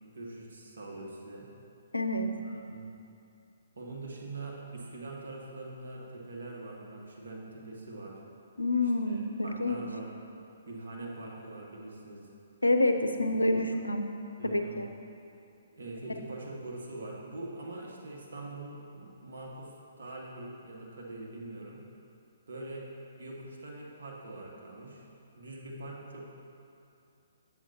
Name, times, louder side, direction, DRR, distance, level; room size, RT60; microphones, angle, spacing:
voice 1, 0.0-1.5 2.4-2.9 3.8-8.2 8.8-10.1 10.6-12.3 13.4-13.6 14.4-14.8 15.7-21.8 22.5-22.8 23.2-25.1 25.4-26.4, right 2 dB, 65° right, -2 dB, 1.3 m, -43 dB
voice 2, 1.9-2.3 8.6-9.8 12.6-14.1 14.4-14.9, left 2 dB, 85° left, 6 dB, 0.5 m, -28 dB
7.8 x 7.5 x 2.8 m, 2.7 s
figure-of-eight pair, 130°, 0 cm